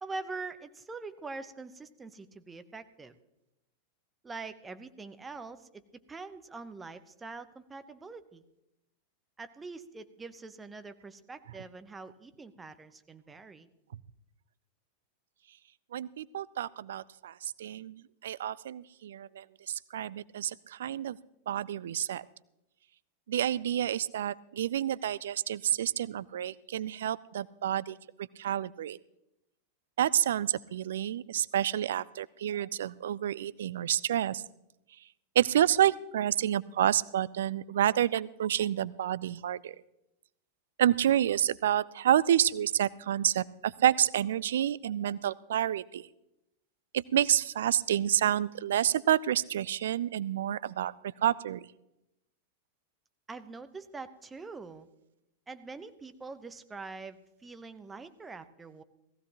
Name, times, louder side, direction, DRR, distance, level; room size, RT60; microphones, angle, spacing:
voice 1, 0.0-3.2 4.2-5.7 6.1-8.4 9.4-13.7 53.3-54.9 55.5-58.8, right 3 dB, 15° right, 11 dB, 0.9 m, -44 dB
voice 2, 15.9-21.2 21.5-22.2 23.3-28.0 28.4-29.0 30.0-34.4 35.4-39.7 40.8-46.1 46.9-50.9 51.2-51.7, right 11 dB, 60° right, 21 dB, 0.4 m, -29 dB
18.0 x 15.5 x 3.0 m, 0.88 s
figure-of-eight pair, 90°, 0 cm